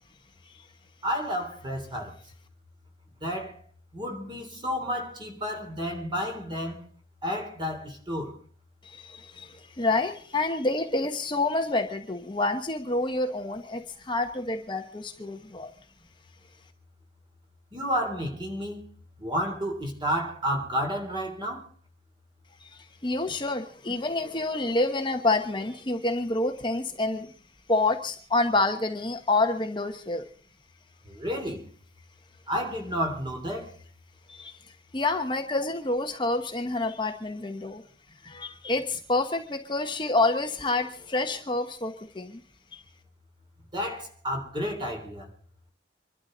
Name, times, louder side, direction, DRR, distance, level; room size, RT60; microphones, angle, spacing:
voice 1, 1.0-2.1 3.2-3.6 3.9-6.8 7.2-8.3 17.7-18.8 19.2-21.7 31.1-31.6 32.5-33.8 43.7-45.3, equal, 25° right, 3.6 m, -31 dB
voice 2, 8.8-15.7 22.6-27.3 27.7-30.3 34.3-34.6 34.9-37.8 38.2-42.4 42.7-42.8, left 2 dB, 25° left, 1.1 m, -28 dB
25.5 x 12.5 x 3.9 m
head